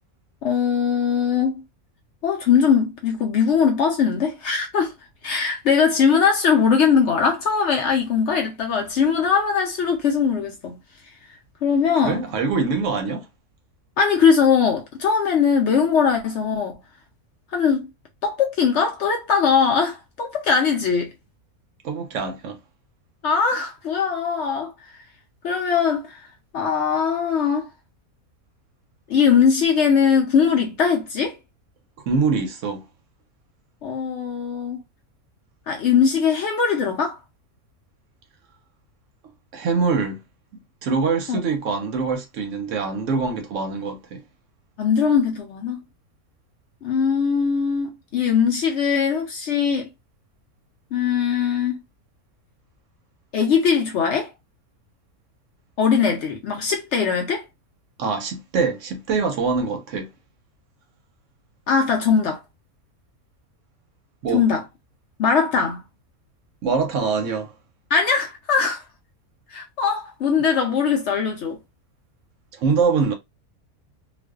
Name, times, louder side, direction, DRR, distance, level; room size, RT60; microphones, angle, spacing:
voice 1, 0.4-1.6 2.2-4.9 5.2-10.8 11.6-12.2 14.0-16.8 17.5-17.9 18.2-21.1 23.2-24.7 25.4-26.2 26.5-27.7 29.1-31.4 33.8-34.8 35.7-37.2 41.3-41.4 44.8-45.8 46.8-49.9 50.9-51.8 53.3-54.3 55.8-57.4 61.7-62.4 64.3-64.6 65.2-65.8 67.9-68.8 69.5-71.6, left 6 dB, 65° left, 0.7 m, -20 dB
voice 2, 12.0-13.3 21.8-22.6 32.1-32.8 39.5-40.2 40.8-44.2 58.0-60.1 64.2-64.4 66.6-67.5 72.5-73.1, right 5 dB, 70° right, 0.8 m, -24 dB
2.5 x 2.2 x 2.3 m
omnidirectional pair, 1.5 m